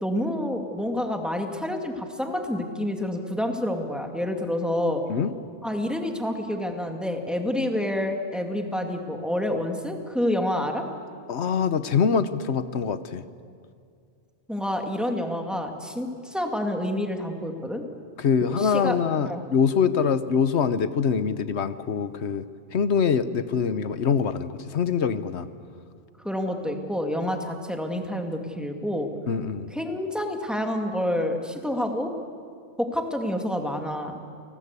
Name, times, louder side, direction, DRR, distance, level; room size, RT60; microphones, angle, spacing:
voice 1, 0.0-5.0 5.6-10.9 14.5-17.8 18.4-19.0 19.2-19.4 26.2-29.1 29.7-32.1 32.8-34.1, left 1 dB, ahead, 3 dB, 2.2 m, -28 dB
voice 2, 11.3-13.2 18.2-25.5 29.3-29.7, left 6 dB, 70° left, 13 dB, 1.2 m, -24 dB
29.5 x 19.5 x 8.2 m, 2.3 s
omnidirectional pair, 1.2 m